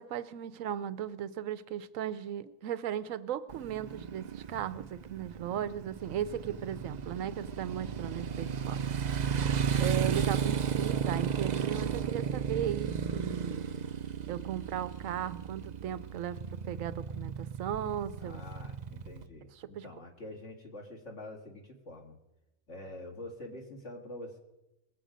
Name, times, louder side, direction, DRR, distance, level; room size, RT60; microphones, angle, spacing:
voice 1, 0.0-8.8 9.8-13.6 14.3-16.4 16.7-18.4 19.6-19.9, right 10 dB, 80° right, 14 dB, 1.0 m, -36 dB
Motorcycle, 3.5-19.2, right 7 dB, 50° right, 0.5 m, -34 dB
voice 2, 10.5-11.1 18.2-22.2 22.7-24.4, left 1 dB, 60° left, 0 dB, 2.2 m, -46 dB
21.0 x 7.9 x 5.0 m, 0.96 s
omnidirectional pair, 1.4 m